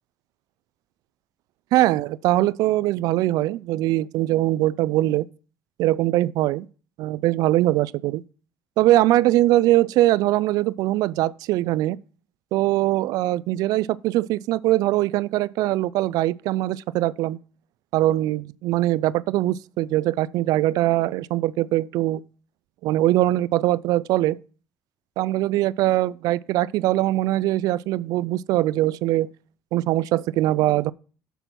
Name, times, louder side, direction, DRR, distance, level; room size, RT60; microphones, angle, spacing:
voice 1, 1.7-5.3 5.8-6.7 7.0-8.2 8.8-12.0 12.5-17.4 17.9-22.2 22.8-24.4 25.2-29.3 29.7-30.9, right 15 dB, 75° right, 0.3 m, -22 dB
6.8 x 5.8 x 6.1 m
cardioid pair, 95°, 6 cm